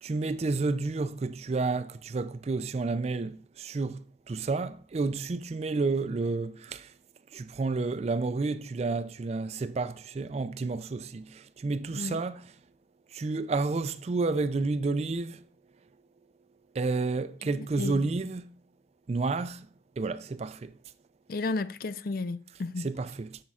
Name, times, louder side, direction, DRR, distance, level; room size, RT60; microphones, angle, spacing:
voice 1, 0.0-4.0 4.3-6.8 7.3-11.3 11.6-12.4 13.1-15.4 16.8-18.5 19.1-19.6 20.0-20.7 22.8-23.4, right 3 dB, 35° right, 0.4 m, -30 dB
voice 2, 17.4-18.1 21.3-22.9, left 3 dB, 55° left, 0.4 m, -33 dB
11.0 x 7.4 x 2.4 m
head